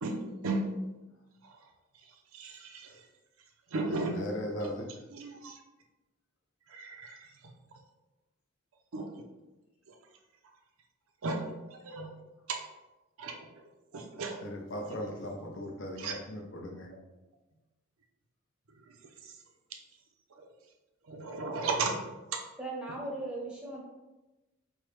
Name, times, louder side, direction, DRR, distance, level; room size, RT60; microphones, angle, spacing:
voice 1, 0.0-0.7 2.3-3.0 3.7-4.3 5.1-5.6 6.7-7.3 8.9-9.1 11.2-12.1 12.5-12.6 13.2-13.7 13.9-14.5 14.8-15.0 16.0-16.2 19.2-19.3 21.1-22.0, right 3 dB, 80° right, 3 dB, 0.6 m, -35 dB
voice 2, 3.9-4.9 14.4-16.9, equal, 60° left, 1 dB, 0.7 m, -38 dB
voice 3, 22.6-23.8, right 2 dB, 5° right, -4 dB, 0.7 m, -38 dB
4.5 x 2.2 x 3.1 m, 1.0 s
head